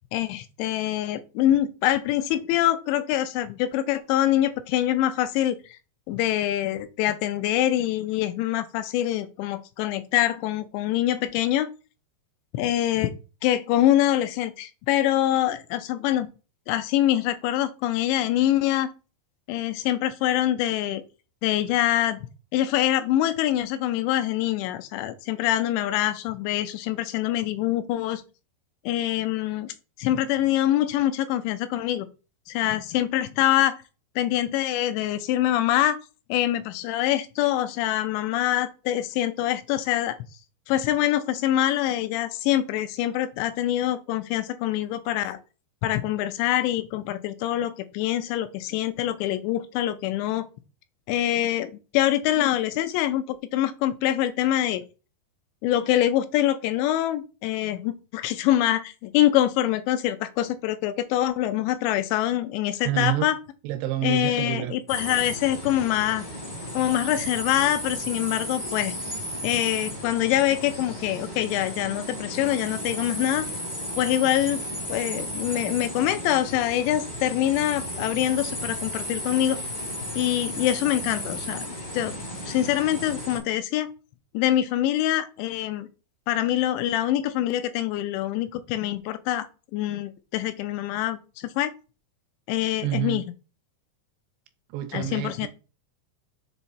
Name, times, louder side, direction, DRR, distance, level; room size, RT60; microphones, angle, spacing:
voice 1, 0.1-5.6 6.1-11.7 12.5-13.1 13.4-16.3 16.7-18.9 19.5-21.0 21.4-22.3 22.5-28.2 28.9-32.1 32.5-33.8 34.2-36.0 36.3-40.2 40.7-45.4 45.8-50.5 51.1-54.8 55.6-63.4 64.0-66.2 66.7-68.9 69.4-73.5 74.0-74.6 74.9-79.6 80.2-82.2 82.5-83.9 84.3-85.9 86.3-89.5 89.7-91.7 92.5-93.2 94.9-95.5, left 13 dB, 85° left, 2.8 m, -25 dB
voice 2, 62.8-63.3 63.6-64.7 92.8-93.2 94.7-95.5, right 14 dB, 80° right, 2.6 m, -28 dB
sound 1, 64.9-83.4, equal, 30° left, 0.8 m, -34 dB
7.1 x 3.5 x 4.0 m
omnidirectional pair, 5.1 m